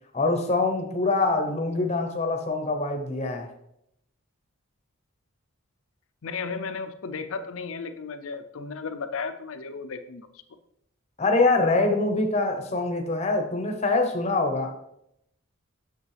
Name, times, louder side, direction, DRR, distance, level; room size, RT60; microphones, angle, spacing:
voice 1, 0.1-3.5 11.2-14.8, left 3 dB, 30° left, 4 dB, 0.9 m, -24 dB
voice 2, 6.2-10.3, left 5 dB, 65° left, 10 dB, 0.5 m, -34 dB
7.3 x 6.4 x 3.3 m, 0.77 s
head